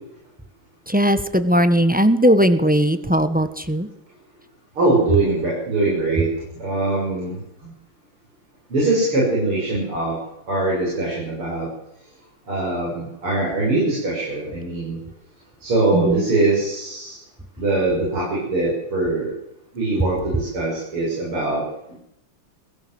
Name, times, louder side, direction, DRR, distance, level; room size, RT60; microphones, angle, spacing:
voice 1, 0.9-3.9 15.9-16.2, equal, 5° right, 10 dB, 0.8 m, -18 dB
voice 2, 4.8-6.3 6.6-7.4 8.7-10.2 10.5-11.7 12.5-15.0 15.6-17.2 17.6-19.3 19.7-21.6 21.9-22.0, right 2 dB, 80° right, -4 dB, 7.5 m, -22 dB
22.5 x 16.5 x 7.9 m, 0.83 s
omnidirectional pair, 2.3 m